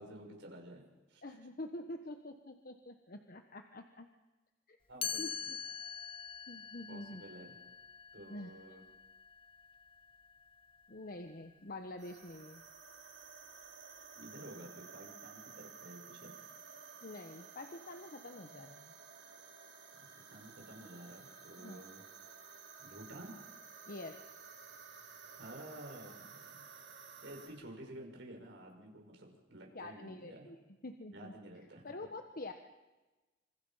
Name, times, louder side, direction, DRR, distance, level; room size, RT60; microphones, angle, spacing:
voice 1, 0.0-1.4 4.9-5.5 6.9-7.6 8.1-8.8 14.1-16.3 20.0-22.0 22.8-23.4 25.4-26.7 27.0-30.5 31.1-31.9, right 1 dB, 70° right, 1 dB, 6.2 m, -51 dB
voice 2, 1.2-4.1 4.7-4.8 5.2-5.6 6.5-7.2 8.3-8.5 10.9-12.6 17.0-18.9 21.6-21.8 23.9-24.2 29.7-30.6 30.8-31.3 31.8-32.5, left 2 dB, 50° left, 6 dB, 1.2 m, -46 dB
Chime, 5.0-10.9, left 7 dB, 30° left, 0.9 m, -44 dB
sound 1, 12.0-27.5, right 6 dB, 85° right, 7.1 m, -54 dB
26.5 x 26.5 x 5.8 m, 1.2 s
head